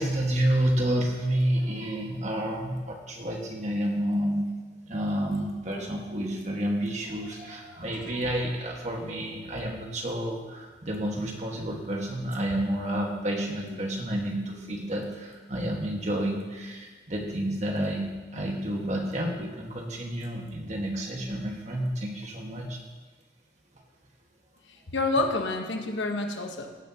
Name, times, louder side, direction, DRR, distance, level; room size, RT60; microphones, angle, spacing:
voice 1, 0.0-4.5 4.9-22.8, right 1 dB, 40° right, 0 dB, 1.8 m, -30 dB
voice 2, 24.9-26.8, left 2 dB, 85° left, 3 dB, 1.3 m, -28 dB
17.0 x 10.5 x 3.0 m, 1.3 s
head